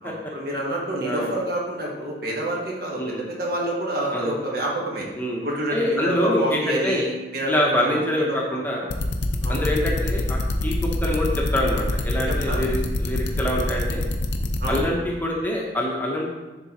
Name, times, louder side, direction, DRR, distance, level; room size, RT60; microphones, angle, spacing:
voice 1, 0.0-5.1 5.4-8.4 9.4-9.6 12.3-12.6 14.6-14.8, right 1 dB, 55° right, -2 dB, 1.4 m, -28 dB
voice 2, 1.0-1.3 3.0-3.2 4.1-4.4 5.2-5.4 5.7-7.0 7.5-8.9 9.5-14.0 14.7-16.4, left 1 dB, 10° left, -3 dB, 0.9 m, -25 dB
sound 1, 8.9-14.8, left 2 dB, 70° left, 0.6 m, -25 dB
10.0 x 3.8 x 2.9 m, 1.1 s
head